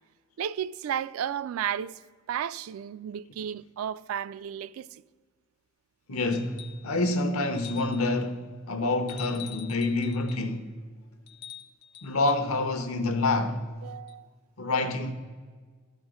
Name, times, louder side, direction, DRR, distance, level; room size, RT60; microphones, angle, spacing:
voice 1, 0.4-2.0 2.3-5.0 13.8-14.3, right 9 dB, 75° right, 0.3 m, -33 dB
voice 2, 6.1-10.7 12.0-13.6 14.6-15.1, left 2 dB, 85° left, 0.9 m, -27 dB
sound 1, 6.3-6.9 7.5-8.1 9.1-10.5 11.3-12.5 14.1-14.2, left 12 dB, 55° left, 0.6 m, -45 dB
12.0 x 4.4 x 5.0 m
head